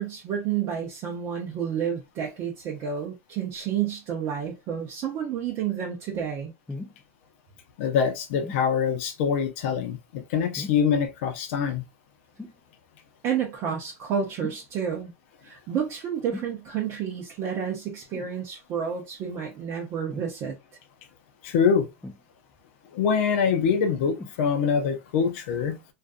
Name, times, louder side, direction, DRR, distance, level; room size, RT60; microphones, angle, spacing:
voice 1, 0.0-6.5 13.2-15.1 15.4-20.6, right 8 dB, 40° right, 0.6 m, -30 dB
sound 1, 6.7-7.0 8.4-8.7 10.5-10.9 12.4-12.6 14.4-14.7 16.3-16.6 18.1-18.4 20.1-20.3 22.0-22.6 24.1-24.4 25.2-25.3, left 2 dB, 5° left, 0.3 m, -39 dB
voice 2, 7.8-11.8 21.4-21.9 22.9-25.8, left 6 dB, 65° left, 0.5 m, -24 dB
2.5 x 2.3 x 2.4 m
supercardioid pair, 130°, 7 cm